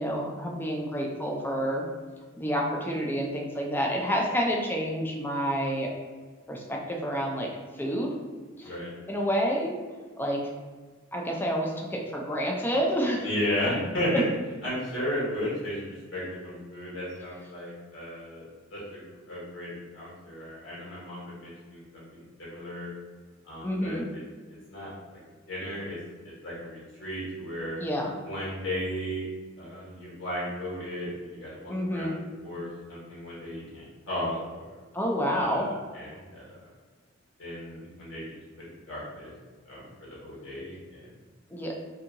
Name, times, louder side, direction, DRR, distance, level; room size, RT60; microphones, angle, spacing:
voice 1, 0.0-1.8 2.4-5.9 6.5-7.5 7.8-8.1 8.6-8.7 9.1-9.8 10.2-10.4 11.1-13.3 14.1-14.2 23.6-24.0 27.8-28.1 31.7-32.1 34.9-35.7 41.5-41.7, equal, 10° left, -1 dB, 0.4 m, -28 dB
voice 2, 13.2-14.3 14.6-22.9 23.4-24.2 24.7-24.9 25.5-26.0 26.4-27.8 28.2-29.3 29.6-34.7 35.3-36.5 37.4-39.3 39.6-41.1, equal, 85° left, -7 dB, 1.4 m, -35 dB
2.7 x 2.7 x 2.5 m, 1.4 s
head